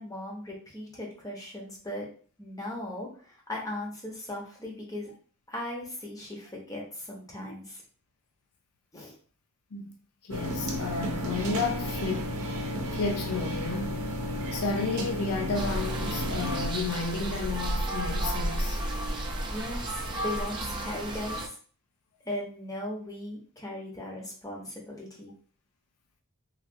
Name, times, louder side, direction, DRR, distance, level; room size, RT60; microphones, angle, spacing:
voice 1, 0.0-2.1 2.4-5.1 5.5-7.8 8.9-9.1 19.5-21.6 22.2-25.3, left 1 dB, 15° left, 0.7 m, -38 dB
voice 2, 10.2-12.4 12.9-14.0 14.5-18.8, left 4 dB, 80° left, 0.5 m, -32 dB
sound 1, 10.3-16.7, equal, 65° right, 0.6 m, -33 dB
sound 2, 15.5-21.5, right 1 dB, 20° right, 0.5 m, -32 dB
3.2 x 2.4 x 2.6 m
head